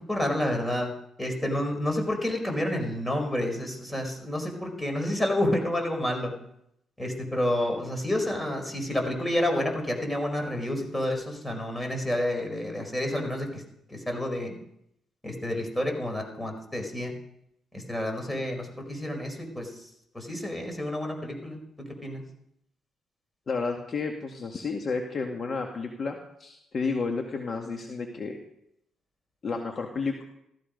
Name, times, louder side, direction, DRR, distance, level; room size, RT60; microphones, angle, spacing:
voice 1, 0.1-0.9 1.2-6.3 7.0-13.6 13.9-14.5 15.2-17.1 17.7-19.7 20.1-21.6 22.0-22.2, left 1 dB, 10° left, 3 dB, 4.8 m, -29 dB
voice 2, 23.5-28.4 29.4-30.2, left 4 dB, 45° left, 2 dB, 2.0 m, -31 dB
16.0 x 14.5 x 5.3 m, 0.76 s
cardioid pair, 90°, 0 cm